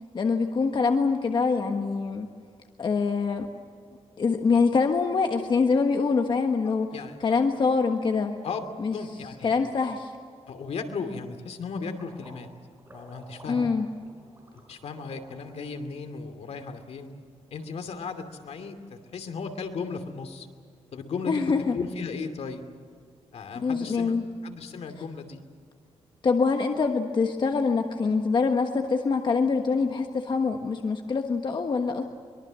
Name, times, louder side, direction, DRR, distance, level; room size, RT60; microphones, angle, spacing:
voice 1, 0.1-2.3 2.8-3.5 4.2-6.9 7.2-8.4 8.8-8.9 9.4-10.1 13.5-13.9 21.3-21.8 23.6-24.3 26.2-32.0, left 4 dB, 45° left, 4 dB, 1.4 m, -24 dB
voice 2, 6.9-7.4 8.4-8.6 8.9-9.7 10.5-12.5 12.9-13.7 14.7-17.1 17.5-20.5 20.9-21.4 21.7-22.6 23.3-24.1 24.4-25.4, left 5 dB, 75° left, 7 dB, 2.6 m, -36 dB
sound 1, 11.8-15.6, right 1 dB, 20° right, 6.1 m, -50 dB
23.5 x 22.5 x 7.6 m, 2.2 s
wide cardioid pair, 130°, 11 cm